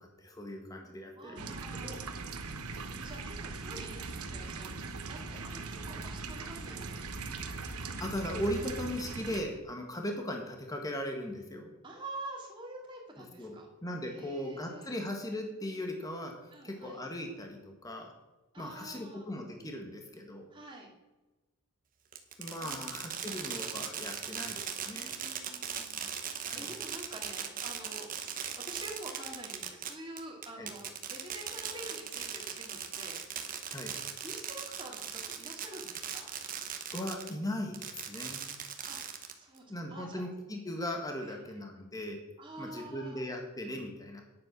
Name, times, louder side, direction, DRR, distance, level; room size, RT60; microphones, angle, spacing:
voice 1, 0.0-2.0 8.0-11.7 13.4-16.3 16.6-18.1 18.6-20.5 22.4-25.2 26.4-26.7 30.6-30.7 33.7-33.9 36.9-38.5 39.7-42.2 42.6-44.2, left 1 dB, 15° left, 3 dB, 1.5 m, -38 dB
voice 2, 1.2-2.0 2.5-7.0 11.8-13.7 14.1-15.0 16.5-17.0 18.5-19.3 20.5-20.9 22.6-22.8 24.9-33.2 34.2-36.3 38.9-40.3 41.2-41.6 42.4-43.2, right 2 dB, 20° right, -1 dB, 2.3 m, -47 dB
sound 1, 1.4-9.4, right 4 dB, 90° right, 1.1 m, -40 dB
Fireworks, 22.1-37.3 37.7-39.6, right 8 dB, 40° right, 1.0 m, -39 dB
9.8 x 7.6 x 5.9 m, 1.1 s
head